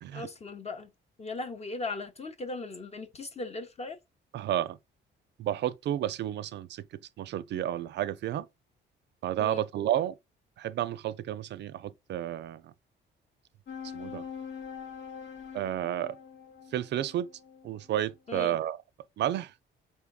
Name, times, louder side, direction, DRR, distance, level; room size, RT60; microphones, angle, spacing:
voice 1, 0.1-0.9 1.2-4.0 9.4-9.6 18.3-18.6, left 3 dB, 30° left, 0.5 m, -38 dB
voice 2, 4.3-4.8 5.4-8.5 9.2-10.2 10.6-12.7 13.9-14.3 15.5-16.2 16.7-17.3 17.6-18.8 19.2-19.5, right 12 dB, 60° right, 0.4 m, -31 dB
sound 1, 13.7-18.5, left 7 dB, 70° left, 1.0 m, -44 dB
4.4 x 3.6 x 2.3 m
cardioid pair, 90°, 20 cm